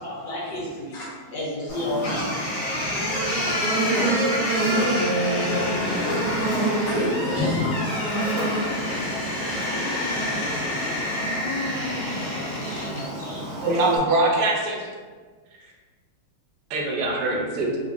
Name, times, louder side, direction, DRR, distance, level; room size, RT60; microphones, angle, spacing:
voice 1, 0.0-2.3, left 1 dB, 65° left, -6 dB, 1.7 m, -31 dB
Buzz, 1.7-14.0, right 1 dB, 15° right, 0.8 m, -29 dB
sound 1, 2.0-13.1, left 1 dB, 85° left, 1.9 m, -27 dB
voice 2, 2.8-8.8, left 1 dB, 40° left, -11 dB, 1.8 m, -33 dB
voice 3, 13.6-14.9 16.7-17.8, right 2 dB, 70° right, -1 dB, 1.2 m, -23 dB
4.0 x 2.7 x 2.6 m, 1.5 s
omnidirectional pair, 2.2 m